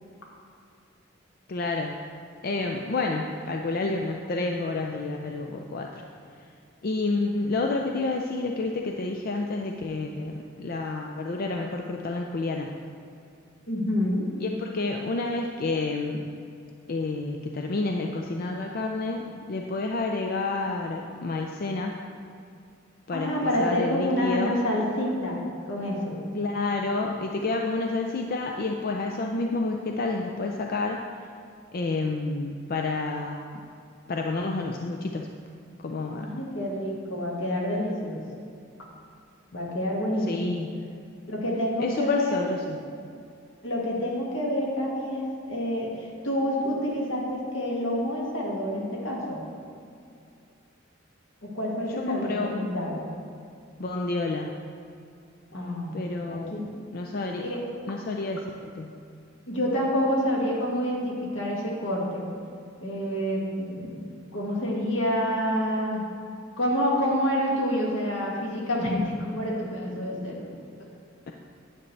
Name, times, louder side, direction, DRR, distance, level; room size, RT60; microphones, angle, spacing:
voice 1, 1.5-2.0 2.4-6.0 6.8-12.7 14.4-16.3 16.9-22.0 23.1-23.3 23.6-24.5 26.3-31.0 31.7-33.4 34.1-35.3 35.8-36.3 40.3-40.7 41.8-42.8 52.0-52.5 53.8-54.6 55.9-56.5 56.9-57.5 57.9-59.0, left 3 dB, 50° left, 2 dB, 0.4 m, -29 dB
voice 2, 13.7-14.3 23.1-25.4 25.7-26.2 36.2-38.2 39.5-40.6 41.3-42.4 43.6-49.4 51.4-53.1 55.5-56.0 56.3-56.7 57.1-57.6 59.5-62.2 62.8-66.0 66.6-70.5, equal, 85° left, -3 dB, 1.8 m, -28 dB
9.3 x 8.4 x 3.2 m, 2.4 s
head